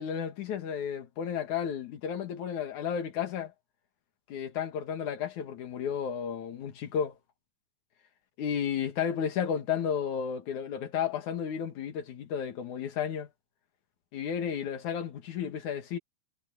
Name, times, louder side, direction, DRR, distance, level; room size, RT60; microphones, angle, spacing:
voice 1, 0.0-3.5 4.3-7.2 8.4-13.3 14.1-16.0, left 8 dB, 75° left, 3.2 m, -33 dB
omnidirectional pair, 3.4 m